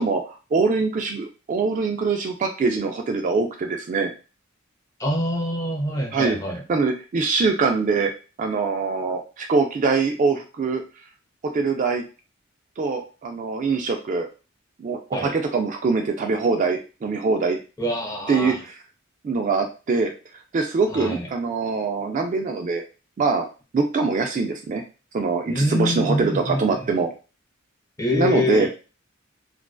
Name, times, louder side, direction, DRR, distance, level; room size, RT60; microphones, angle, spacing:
voice 1, 0.0-4.1 6.1-6.4 6.7-8.1 8.4-10.8 11.5-12.0 12.8-14.3 14.8-17.6 18.3-18.8 19.2-20.1 20.5-22.8 23.2-23.5 23.7-24.8 25.1-27.1 28.1-28.7, right 4 dB, 40° right, 4 dB, 0.3 m, -23 dB
voice 2, 5.0-6.6 15.1-15.3 17.8-18.6 20.9-21.3 25.5-26.6 28.0-28.7, left 1 dB, 15° left, 0 dB, 0.6 m, -25 dB
2.5 x 2.1 x 2.2 m, 0.32 s
head